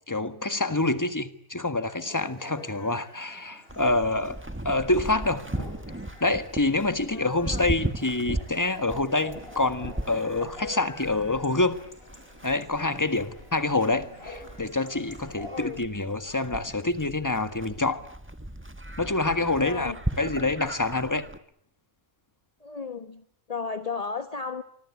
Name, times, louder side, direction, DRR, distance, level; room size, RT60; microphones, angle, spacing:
voice 1, 0.1-4.4 4.6-5.7 6.2-11.8 12.4-18.0 19.0-21.2, left 2 dB, 15° left, 10 dB, 1.7 m, -26 dB
Chatter / Bark / Livestock farm animals working animals, 1.9-15.5, left 1 dB, 50° left, 5.6 m, -47 dB
Livestock farm animals working animals, 3.7-21.4, right 1 dB, 10° right, 1.5 m, -37 dB
voice 2, 7.1-7.7 15.5-15.9 19.3-20.0 22.6-24.6, left 5 dB, 30° left, 9 dB, 1.3 m, -35 dB
25.5 x 24.5 x 8.5 m, 0.69 s
omnidirectional pair, 1.3 m